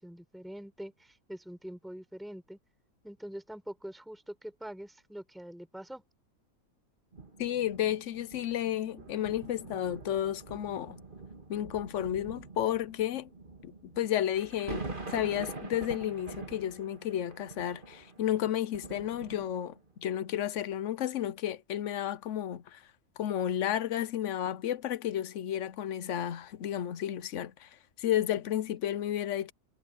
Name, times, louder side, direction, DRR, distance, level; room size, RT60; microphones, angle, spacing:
voice 1, 0.0-2.6 3.0-6.0 28.6-28.8, equal, ahead, 4.0 m, -44 dB
sound 1, 7.1-19.9 20.6-20.7, right 3 dB, 35° right, 2.5 m, -45 dB
voice 2, 7.4-11.0 11.5-13.3 13.6-22.8 23.2-27.7 28.0-29.5, left 11 dB, 65° left, 1.0 m, -32 dB
omnidirectional pair, 1.5 m